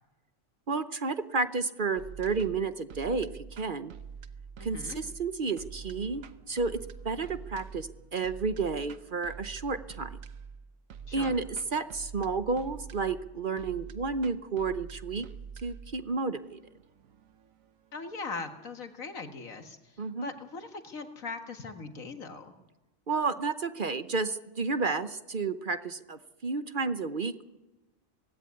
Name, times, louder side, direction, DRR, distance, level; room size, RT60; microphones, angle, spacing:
voice 1, 0.7-3.9 4.6-6.8 7.0-10.1 11.1-15.3 15.6-16.6 20.0-20.3 23.1-27.6, right 4 dB, 45° right, 11 dB, 0.9 m, -31 dB
sound 1, 2.0-19.1, right 6 dB, 80° right, 1.4 m, -46 dB
voice 2, 4.6-5.0 11.1-11.4 17.9-19.8 20.2-22.5, left 4 dB, 85° left, 6 dB, 2.2 m, -40 dB
18.0 x 16.5 x 9.6 m, 1.1 s
omnidirectional pair, 1.4 m